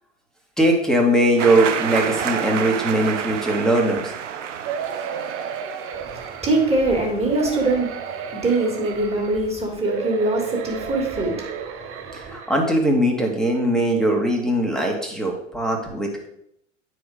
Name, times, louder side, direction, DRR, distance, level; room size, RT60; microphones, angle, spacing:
voice 1, 0.6-4.1 12.1-16.3, right 1 dB, ahead, 0 dB, 2.0 m, -20 dB
sound 1, 1.4-8.0, right 8 dB, 80° right, 0.9 m, -30 dB
sound 2, 4.6-6.8 7.3-9.4 9.8-12.7 13.3-13.4 13.6-13.7, right 7 dB, 35° right, 1.1 m, -33 dB
voice 2, 5.9-12.4, right 2 dB, 15° right, 0 dB, 2.7 m, -23 dB
9.1 x 5.0 x 5.1 m, 0.76 s
hypercardioid pair, 100°, 37 cm